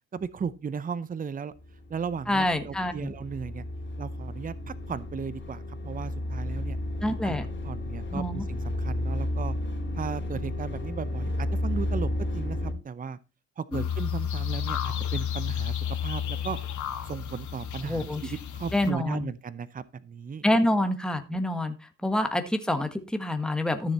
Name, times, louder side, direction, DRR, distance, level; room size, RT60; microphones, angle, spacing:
voice 1, 0.1-1.5 1.9-3.6 4.0-6.8 7.2-7.4 7.6-9.6 9.9-13.2 13.6-16.6 17.0-20.4 22.0-22.1, right 6 dB, 30° right, 0.7 m, -36 dB
sound 1, 1.5-12.7, left 1 dB, 40° left, 3.0 m, -32 dB
voice 2, 2.3-3.1 7.0-7.4 8.1-8.4 13.7-13.8 17.8-18.2 18.7-19.3 20.4-21.7 22.0-23.9, left 1 dB, 5° left, 1.5 m, -27 dB
sound 2, 13.7-18.9, left 8 dB, 75° left, 1.8 m, -32 dB
13.0 x 6.8 x 4.2 m
cardioid pair, 90°, 30 cm